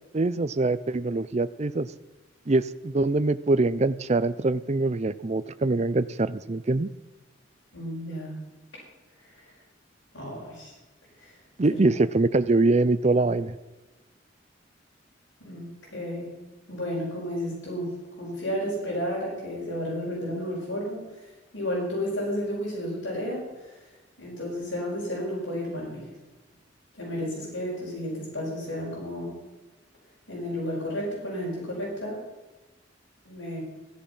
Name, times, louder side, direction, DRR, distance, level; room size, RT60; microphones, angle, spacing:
voice 1, 0.1-1.9 2.5-6.9 11.6-13.6, right 2 dB, 35° right, 15 dB, 0.5 m, -24 dB
voice 2, 7.7-8.4 9.4-9.5 10.1-10.7 11.2-11.3 11.7-11.8 15.4-16.3 16.7-21.2 21.5-23.8 24.2-26.1 26.9-29.4 30.3-32.2 33.2-33.6, equal, 80° left, -7 dB, 6.2 m, -32 dB
16.0 x 10.5 x 5.6 m, 1.1 s
head